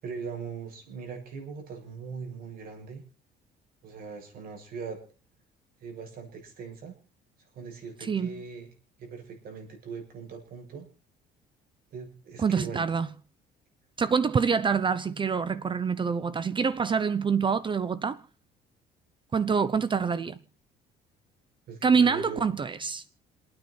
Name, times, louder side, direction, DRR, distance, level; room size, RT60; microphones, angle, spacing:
voice 1, 0.0-3.0 3.8-5.0 5.8-6.9 7.5-8.7 9.0-10.9 11.9-12.9 21.7-22.4, right 5 dB, 60° right, 7.9 m, -40 dB
voice 2, 8.0-8.3 12.4-13.1 14.0-18.2 19.3-20.4 21.8-23.0, right 6 dB, 30° right, 0.8 m, -26 dB
28.5 x 9.7 x 4.4 m
cardioid pair, 110°, 17 cm